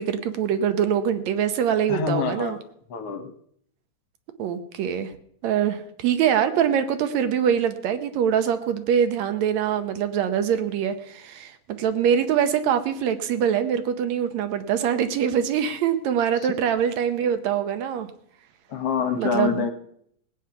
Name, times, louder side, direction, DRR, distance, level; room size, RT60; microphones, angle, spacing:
voice 1, 0.0-2.6 4.4-5.1 5.4-18.1 19.2-19.6, right 8 dB, 75° right, 9 dB, 2.0 m, -24 dB
voice 2, 1.9-2.5 2.9-3.3 16.4-16.5 18.7-19.7, left 6 dB, 65° left, 6 dB, 1.7 m, -26 dB
18.5 x 9.1 x 5.7 m, 0.70 s
omnidirectional pair, 3.4 m